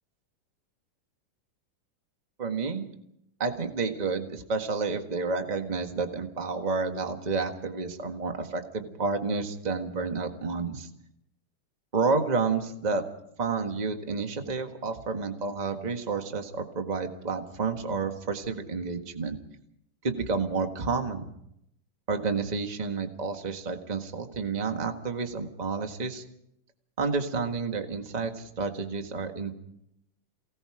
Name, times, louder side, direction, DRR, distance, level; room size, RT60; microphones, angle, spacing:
voice 1, 2.4-2.9 3.4-10.9 11.9-13.0 13.4-19.4 20.0-21.3 22.1-26.2 27.0-29.5, right 4 dB, 40° right, 5 dB, 0.5 m, -30 dB
28.5 x 18.5 x 5.0 m, 0.76 s
omnidirectional pair, 3.7 m